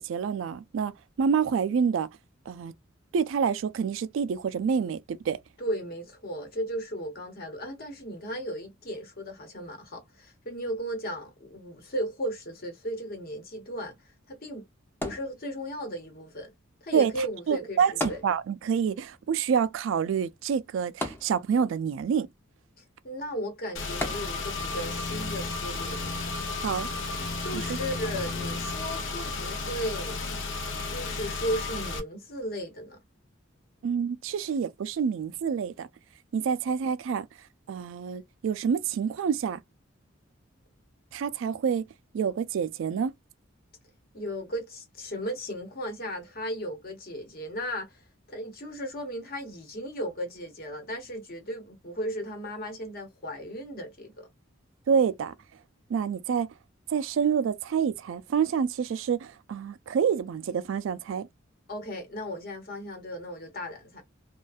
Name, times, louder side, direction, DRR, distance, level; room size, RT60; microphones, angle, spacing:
voice 1, 0.0-2.1 2.5-2.7 3.1-5.4 16.9-17.1 17.5-22.3 26.6-26.9 27.5-27.8 33.8-35.9 36.3-37.3 37.7-39.6 41.1-41.8 42.1-43.1 54.9-55.3 55.9-56.5 56.9-61.3, right 7 dB, 70° right, 0.3 m, -27 dB
voice 2, 5.6-13.9 14.3-14.6 15.0-16.5 16.8-18.2 22.8-26.0 27.4-30.2 30.9-33.0 44.1-48.0 48.3-54.3 61.7-64.0, equal, 50° left, 1.0 m, -35 dB
sound 1, 15.0-15.9 18.0-18.9 19.2-19.3 21.0-21.8 24.0-24.7 25.4-25.5, left 1 dB, 10° left, 0.6 m, -35 dB
Car / Engine, 23.8-32.0, left 3 dB, 65° left, 0.6 m, -33 dB
2.4 x 2.2 x 2.3 m
head